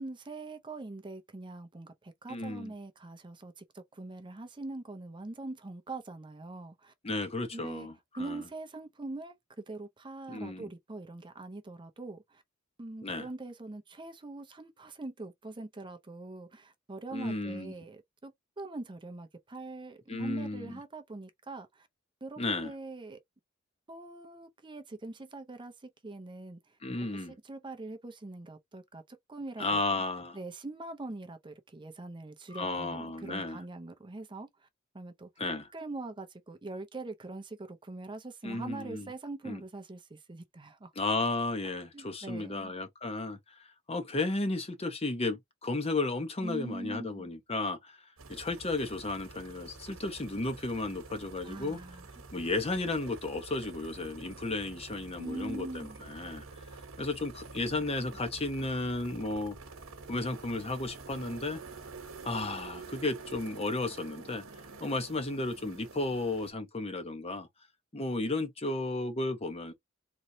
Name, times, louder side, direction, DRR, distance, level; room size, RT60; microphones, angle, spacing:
voice 1, 0.0-6.9 7.5-7.9 8.1-9.3 9.7-12.4 12.8-21.9 22.2-23.2 23.9-26.8 27.1-30.0 30.3-34.7 34.9-35.3 35.7-40.9 41.9-42.7 46.4-47.3 51.4-52.1 55.2-56.0, right 2 dB, 25° right, 0.6 m, -43 dB
voice 2, 2.3-2.7 7.0-7.9 8.2-8.4 10.3-10.7 13.0-13.3 17.1-17.7 20.1-20.8 22.4-22.7 26.8-27.4 29.6-30.4 32.5-33.6 35.4-35.7 38.4-39.1 39.4-39.6 41.0-48.0 48.3-51.8 52.3-56.4 57.0-59.6 60.1-61.6 62.2-64.4 64.8-67.5 67.9-69.7, left 2 dB, 30° left, 0.9 m, -33 dB
sound 1, 48.2-66.5, right 4 dB, 85° right, 1.2 m, -48 dB
4.0 x 3.1 x 2.7 m
head